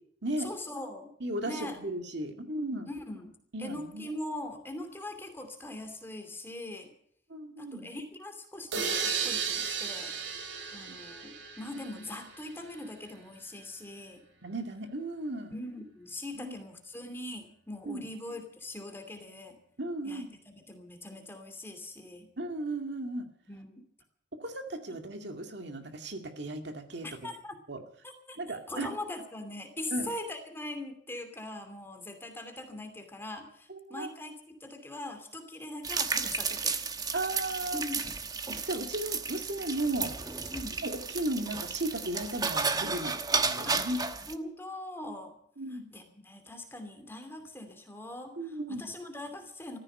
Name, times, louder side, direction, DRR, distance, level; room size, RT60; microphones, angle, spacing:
voice 1, 0.4-1.1 1.5-1.8 2.9-3.3 3.6-6.9 7.6-10.1 10.7-14.2 15.5-19.6 20.0-20.2 20.5-22.3 23.5-23.9 27.0-27.6 28.0-28.4 28.7-36.8 37.7-38.1 40.5-40.8 43.6-43.8 44.3-45.4 45.9-49.8, left 1 dB, 10° left, 6 dB, 2.7 m, -41 dB
voice 2, 1.2-2.9 3.5-4.1 7.3-7.9 10.9-11.0 14.4-15.6 16.3-16.5 17.9-18.1 19.8-20.3 22.4-23.3 24.4-27.1 27.7-27.8 28.4-28.9 29.9-30.1 33.7-34.1 37.1-37.8 38.5-40.1 40.8-44.1 45.6-45.8 48.4-48.9, right 1 dB, 60° right, 5 dB, 2.3 m, -35 dB
sound 1, 8.7-12.5, right 6 dB, 85° right, 3.2 m, -34 dB
sound 2, 35.8-44.3, right 4 dB, 20° right, 1.1 m, -33 dB
15.0 x 14.5 x 6.6 m, 0.64 s
head